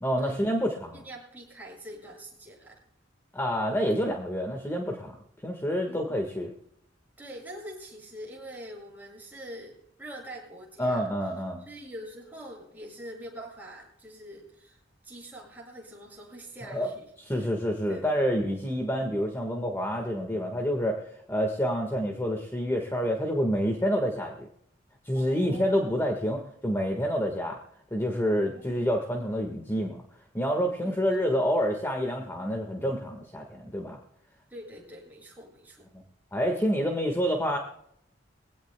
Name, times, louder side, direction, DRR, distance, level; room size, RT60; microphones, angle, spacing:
voice 1, 0.0-1.0 3.3-5.1 5.4-6.5 10.8-11.6 16.7-16.9 17.2-21.0 21.3-24.5 25.0-27.6 27.9-30.0 30.3-34.0 35.9-36.0 36.3-37.6, equal, 15° left, 2 dB, 1.6 m, -28 dB
voice 2, 0.9-2.8 5.9-6.2 7.2-11.0 11.6-17.1 17.4-17.5 17.9-18.2 25.1-26.2 28.5-28.6 30.8-31.2 34.5-35.9, equal, 10° right, -4 dB, 7.7 m, -44 dB
23.0 x 17.0 x 2.3 m, 0.72 s
head